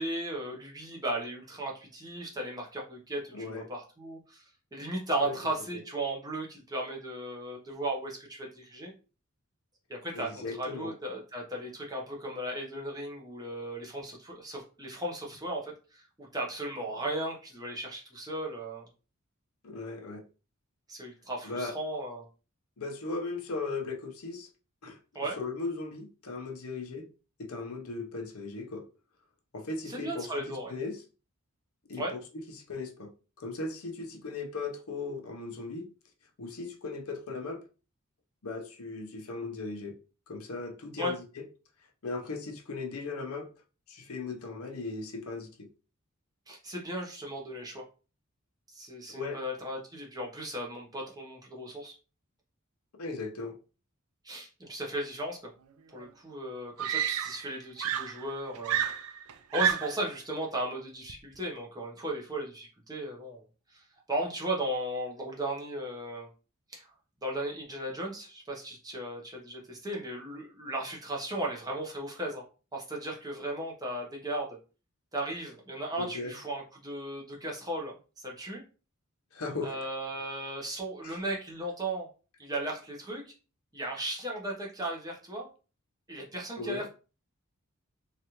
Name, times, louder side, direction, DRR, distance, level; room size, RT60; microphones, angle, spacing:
voice 1, 0.0-4.4 4.7-8.9 9.9-18.9 20.9-22.2 25.1-25.4 29.9-30.7 32.0-32.1 41.0-41.1 46.5-47.8 48.7-51.9 54.2-55.4 55.9-58.8 59.5-63.4 63.7-66.3 66.7-66.9 67.2-72.4 72.7-74.5 75.1-78.6 79.6-82.1 82.4-83.3 83.7-85.5 86.1-86.9, right 1 dB, 20° right, 0.8 m, -36 dB
voice 2, 3.3-3.6 5.2-5.3 10.1-10.9 19.6-20.2 21.4-21.7 22.8-24.5 24.8-27.1 27.4-28.8 29.5-31.0 31.9-32.2 32.5-33.1 33.4-35.9 36.4-37.6 38.4-39.9 40.3-41.2 42.0-43.5 43.9-45.7 49.1-49.4 53.0-53.6 76.0-76.4 79.3-79.8 81.0-81.2 86.6-86.9, left 3 dB, 80° left, 0.7 m, -37 dB
Screaming, 56.0-56.1 56.8-57.5 57.8-60.1 61.1-61.4, right 9 dB, 80° right, 0.4 m, -30 dB
3.2 x 2.4 x 2.8 m
head